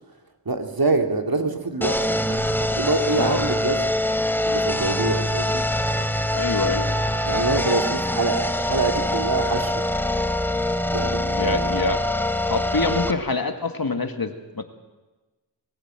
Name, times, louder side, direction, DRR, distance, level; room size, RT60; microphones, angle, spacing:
voice 1, 0.5-3.9 4.5-5.6 7.2-9.8 10.9-11.8, right 3 dB, 55° right, 5 dB, 2.4 m, -25 dB
sound 1, 1.8-13.1, left 1 dB, 5° left, 1.3 m, -24 dB
voice 2, 3.1-3.4 6.3-6.9 11.4-12.0 12.5-14.6, left 3 dB, 55° left, 7 dB, 2.0 m, -25 dB
22.5 x 15.5 x 9.0 m, 1.2 s
wide cardioid pair, 45°, 42 cm